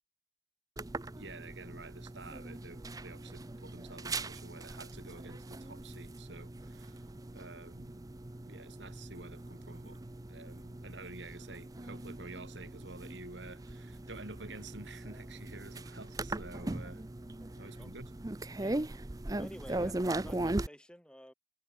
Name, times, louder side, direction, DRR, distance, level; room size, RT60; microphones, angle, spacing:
sound 1, 0.8-20.7, right 2 dB, 20° right, 0.6 m, -40 dB
voice 1, 1.2-8.0 8.5-10.0 10.3-17.0 17.6-18.1, right 2 dB, 80° right, 4.3 m, -50 dB
voice 2, 17.4-17.9 18.6-18.8 19.3-21.3, equal, 5° left, 4.5 m, -51 dB
head